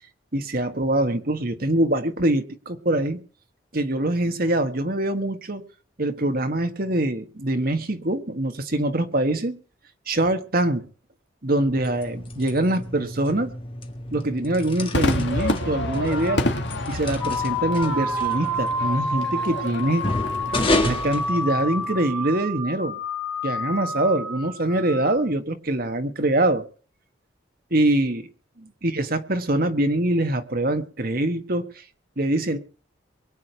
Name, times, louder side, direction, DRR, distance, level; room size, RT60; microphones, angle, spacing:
voice 1, 0.3-3.2 3.7-5.6 6.0-9.6 10.1-10.8 11.4-13.5 14.1-16.4 16.9-20.0 20.8-23.0 23.4-26.6 27.7-28.3 28.6-31.7 32.2-32.6, right 1 dB, 50° right, 7 dB, 1.5 m, -24 dB
sound 1, 11.6-22.1, left 2 dB, 25° left, 1.9 m, -31 dB
Crowd / Fireworks, 14.9-21.5, left 1 dB, 60° left, 2.0 m, -29 dB
sound 2, 17.2-25.2, left 1 dB, 5° left, 5.5 m, -29 dB
23.5 x 8.6 x 4.6 m, 0.40 s
head